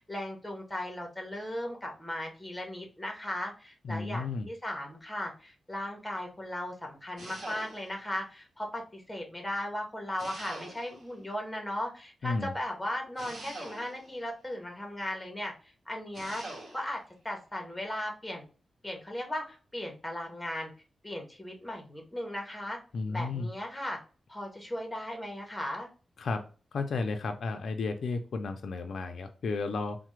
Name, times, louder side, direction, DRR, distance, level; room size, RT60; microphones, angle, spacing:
voice 1, 0.0-15.5 15.9-16.4 16.7-18.4 18.8-20.7 21.0-22.8 23.1-24.0 24.3-25.9, left 1 dB, 5° left, 1 dB, 0.8 m, -37 dB
voice 2, 3.8-4.5 12.2-12.5 22.9-23.5 26.2-26.4 26.7-30.0, left 3 dB, 70° left, 6 dB, 0.4 m, -33 dB
sound 1, 7.2-8.1 10.2-11.1 13.2-14.2 16.1-16.9, right 2 dB, 55° right, 1.1 m, -44 dB
3.2 x 2.0 x 3.0 m, 0.36 s
wide cardioid pair, 155°, 0 cm